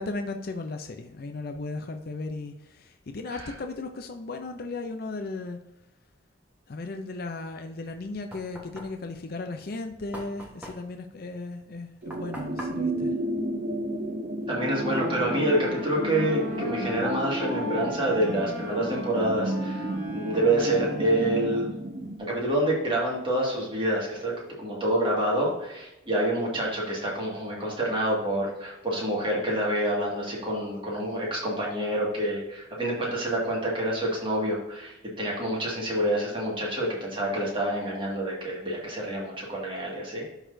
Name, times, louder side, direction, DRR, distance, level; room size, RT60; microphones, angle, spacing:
voice 1, 0.0-5.6 6.7-13.2, left 3 dB, 50° left, 6 dB, 0.5 m, -36 dB
Knock, 7.8-14.2, right 1 dB, 10° right, 1.3 m, -45 dB
sound 1, 12.0-22.2, right 1 dB, 40° right, 0.7 m, -32 dB
Wind instrument woodwind instrument, 14.5-21.9, equal, 20° left, 2.1 m, -39 dB
voice 2, 14.5-19.9 20.1-21.7 22.2-24.3 24.6-40.3, right 1 dB, 25° right, -4 dB, 2.1 m, -27 dB
12.0 x 4.1 x 2.7 m, 0.93 s
head